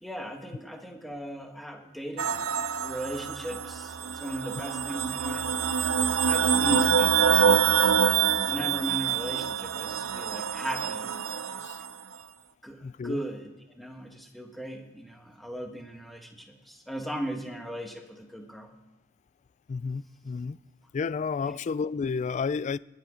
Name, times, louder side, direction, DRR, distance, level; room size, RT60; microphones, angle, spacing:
voice 1, 0.0-2.4 2.7-5.5 6.2-7.9 8.4-11.6 12.6-18.7 21.4-21.6, right 1 dB, ahead, 1.3 m, -37 dB
sound 1, 2.2-11.9, right 7 dB, 85° right, 0.6 m, -26 dB
voice 2, 12.8-13.2 19.7-20.6 20.9-22.8, left 5 dB, 35° left, 0.3 m, -31 dB
19.5 x 7.2 x 5.0 m
head